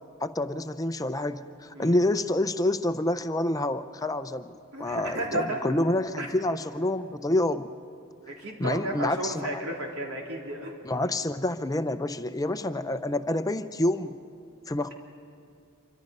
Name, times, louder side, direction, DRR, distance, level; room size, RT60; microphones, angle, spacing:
voice 1, 0.2-7.7 8.6-9.6 10.8-14.2 14.7-14.9, left 1 dB, 15° left, 10 dB, 0.5 m, -28 dB
voice 2, 4.7-5.7 6.2-6.3 8.3-10.7, right 1 dB, 90° right, -1 dB, 3.8 m, -33 dB
27.0 x 24.5 x 5.4 m, 2.4 s
head